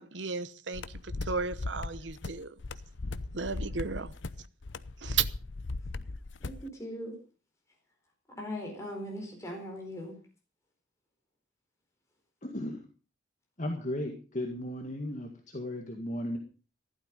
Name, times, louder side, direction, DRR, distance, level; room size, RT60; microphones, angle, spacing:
voice 1, 0.0-2.5 3.3-4.1 5.0-5.3, right 6 dB, 70° right, 1.0 m, -34 dB
sound 1, 0.7-6.7, left 3 dB, 70° left, 0.7 m, -38 dB
voice 2, 6.4-7.1 8.3-10.1, equal, 15° left, 4.4 m, -39 dB
voice 3, 12.4-12.8 13.6-16.4, left 1 dB, 40° left, 2.0 m, -35 dB
15.0 x 12.0 x 5.3 m
head